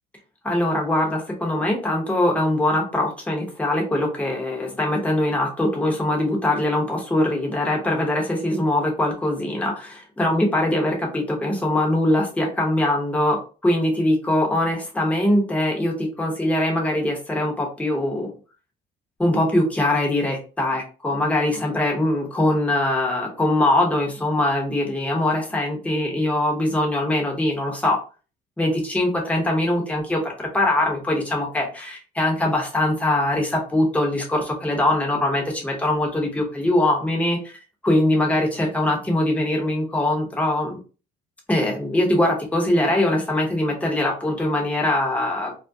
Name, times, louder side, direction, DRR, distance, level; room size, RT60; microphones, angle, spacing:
voice 1, 0.4-18.3 19.2-28.0 28.6-40.8 41.5-45.6, left 1 dB, 10° left, -1 dB, 0.8 m, -22 dB
2.3 x 2.1 x 2.6 m, 0.35 s
cardioid pair, 110°, 17 cm